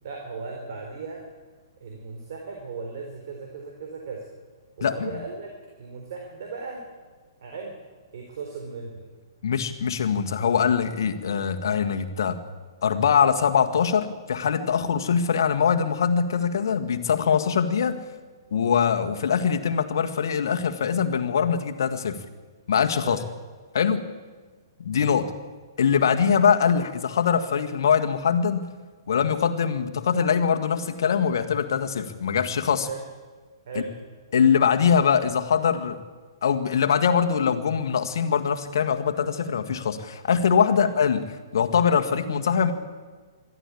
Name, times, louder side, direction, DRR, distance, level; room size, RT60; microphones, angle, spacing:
voice 1, 0.0-1.2 1.8-4.3 4.8-5.5 5.8-6.8 7.4-7.7 8.1-9.1 23.0-23.2 32.8-33.0 33.7-33.9 40.7-40.9, right 4 dB, 55° right, 1 dB, 4.1 m, -36 dB
voice 2, 4.8-5.1 9.4-12.4 12.8-18.0 18.5-22.2 22.7-23.2 23.7-24.0 24.8-25.3 25.8-28.6 29.1-32.9 34.3-36.0 36.4-41.2 41.5-42.7, left 7 dB, 60° left, 6 dB, 1.9 m, -22 dB
22.0 x 14.0 x 8.6 m, 1.4 s
figure-of-eight pair, 120°, 2 cm